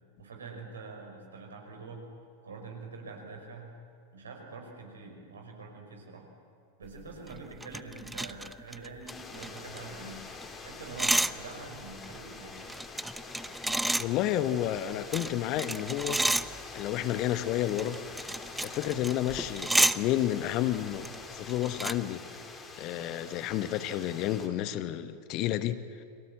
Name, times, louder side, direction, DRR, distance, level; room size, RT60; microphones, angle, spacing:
voice 1, 0.2-2.1 2.4-3.7 4.1-6.2 6.8-10.2 10.6-12.6, right 3 dB, 70° right, 2 dB, 5.7 m, -45 dB
sound 1, 7.0-10.2 10.4-10.5 10.7-11.3 11.8-14.0 14.8-16.8 17.5-20.0 20.7-21.2 21.5-22.0, right 2 dB, 5° right, 0.6 m, -31 dB
sound 2, 9.1-24.5, left 4 dB, 20° left, 3.8 m, -45 dB
voice 2, 14.0-16.2 16.7-18.0 18.6-22.2 22.8-25.8, left 12 dB, 40° left, 12 dB, 1.1 m, -31 dB
30.0 x 23.0 x 7.7 m, 2.5 s
figure-of-eight pair, 90°, 0 cm